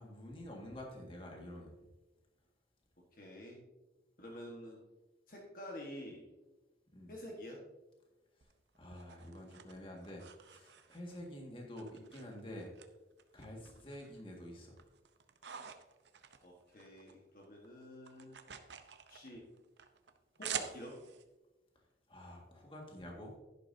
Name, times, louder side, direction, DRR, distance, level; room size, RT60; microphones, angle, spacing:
voice 1, 0.0-1.7 6.9-7.1 8.4-12.7 13.3-14.8 22.1-23.4, left 1 dB, 30° left, 0 dB, 1.9 m, -48 dB
voice 2, 3.1-3.6 4.2-4.8 5.3-6.3 7.1-7.6 13.7-13.8 16.4-18.4 19.1-19.5 20.4-21.0, equal, 50° left, -1 dB, 1.5 m, -48 dB
sound 1, 8.4-11.3 11.8-12.9 13.2-14.2 14.6-17.2 17.4-21.2, right 8 dB, 80° right, 0.8 m, -48 dB
11.0 x 11.0 x 2.8 m, 1.1 s
head